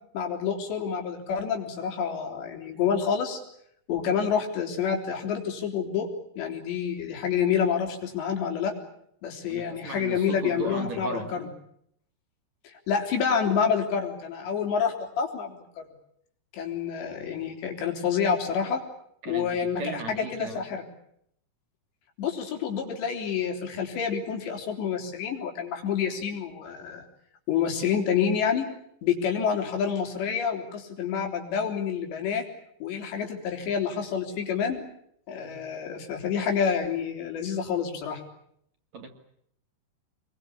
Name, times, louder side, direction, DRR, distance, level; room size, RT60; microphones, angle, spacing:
voice 1, 0.1-3.4 3.9-6.1 6.4-8.7 9.2-11.5 12.6-15.6 16.5-18.8 19.3-20.8 22.2-27.0 27.5-28.7 29.0-32.5 32.8-34.8 35.3-38.2, left 7 dB, 80° left, 3 dB, 5.9 m, -28 dB
voice 2, 9.5-11.3 19.2-20.6 35.4-35.6 38.9-39.1, right 4 dB, 45° right, 5 dB, 3.3 m, -36 dB
26.5 x 22.5 x 8.6 m, 0.71 s
omnidirectional pair, 4.9 m